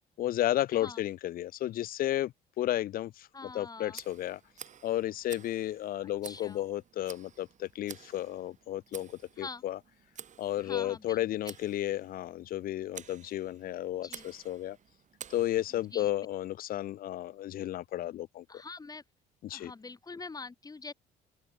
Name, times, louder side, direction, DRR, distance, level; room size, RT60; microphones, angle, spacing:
voice 1, 0.2-3.3 3.5-4.4 4.8-9.1 9.4-9.8 10.4-14.8 15.3-18.4 19.4-19.7, left 13 dB, 60° left, 0.6 m, -33 dB
voice 2, 3.3-4.0 6.2-6.6 9.4-9.6 10.5-11.6 14.0-14.3 15.9-16.1 18.5-19.0 19.5-20.9, left 4 dB, 20° left, 4.4 m, -44 dB
Tick, 3.9-16.0, right 8 dB, 45° right, 3.7 m, -51 dB
open air
cardioid pair, 110°, 17 cm